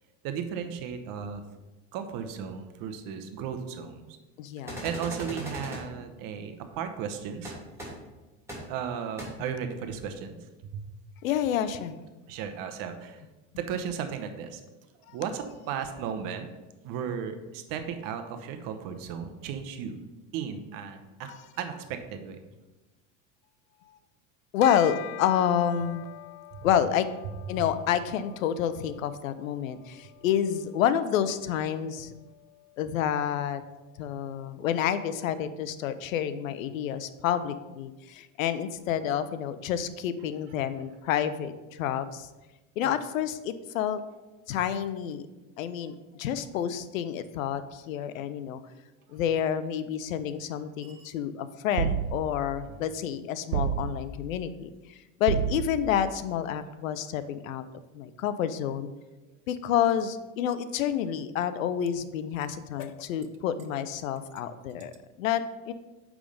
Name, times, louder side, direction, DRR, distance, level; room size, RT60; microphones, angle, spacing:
voice 1, 0.2-1.4 1.9-4.0 4.8-7.6 8.7-10.4 10.7-10.8 12.3-13.2 13.6-14.6 15.1-16.5 16.8-20.0 20.3-22.4 50.8-51.1, right 7 dB, 60° right, 7 dB, 1.0 m, -35 dB
voice 2, 4.4-4.8 11.2-12.0 15.1-15.2 21.3-21.4 24.5-26.0 26.6-27.1 27.5-32.1 32.8-33.6 34.0-42.3 42.8-44.0 44.5-45.3 45.6-48.6 49.1-54.7 55.2-57.6 57.9-58.9 59.5-65.7, left 9 dB, 90° left, 13 dB, 0.6 m, -29 dB
sound 1, 4.7-5.8 7.4-7.5 7.8-7.9 8.5-8.6 9.2-9.3, right 1 dB, 5° right, 2.7 m, -37 dB
Bell, 24.6-34.3, left 16 dB, 40° left, 0.5 m, -46 dB
sound 2, 51.8-52.5 53.5-54.3 55.3-56.0, right 8 dB, 85° right, 0.5 m, -30 dB
8.5 x 3.7 x 5.1 m, 1.1 s
hypercardioid pair, 95°, 39 cm